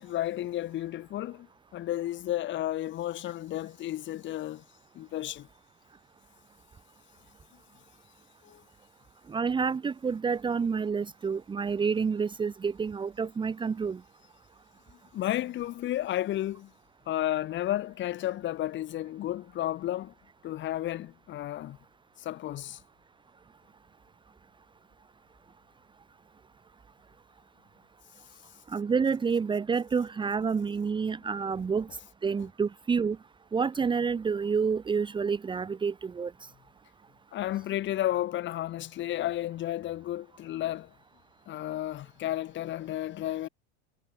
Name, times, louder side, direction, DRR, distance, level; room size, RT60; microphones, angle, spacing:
voice 1, 0.0-1.5 1.7-4.6 5.0-5.5 8.4-8.6 15.1-16.7 17.1-20.1 20.4-21.8 22.2-22.8 37.3-40.9 41.5-43.5, left 13 dB, 35° left, 7.0 m, -32 dB
voice 2, 9.3-14.0 28.7-31.9 32.2-33.2 33.5-36.3, right 5 dB, 15° right, 2.1 m, -28 dB
supercardioid pair, 140°, 34 cm